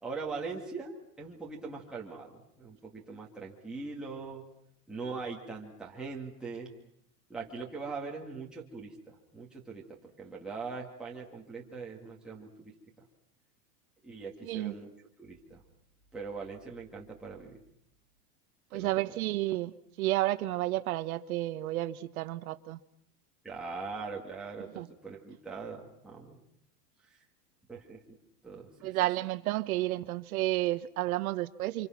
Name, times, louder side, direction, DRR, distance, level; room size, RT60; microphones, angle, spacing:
voice 1, 0.0-4.5 4.9-6.7 7.3-12.7 14.0-14.9 15.2-15.6 16.1-17.6 18.7-19.0 23.4-26.4 27.7-28.2 28.4-29.0, right 4 dB, ahead, 2.4 m, -41 dB
voice 2, 14.4-14.7 18.7-19.7 20.0-22.8 24.7-24.9 28.8-31.9, right 16 dB, 65° right, 1.4 m, -31 dB
30.0 x 26.5 x 6.0 m
supercardioid pair, 175°, 47 cm